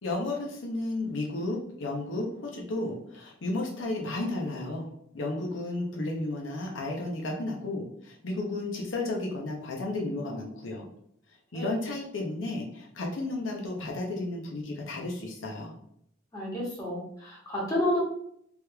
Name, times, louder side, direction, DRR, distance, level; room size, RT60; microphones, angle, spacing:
voice 1, 0.0-10.9 11.5-15.7, left 2 dB, 85° left, 0 dB, 0.7 m, -33 dB
voice 2, 16.3-18.0, left 1 dB, 20° left, -5 dB, 1.2 m, -30 dB
3.4 x 3.0 x 2.2 m, 0.70 s
head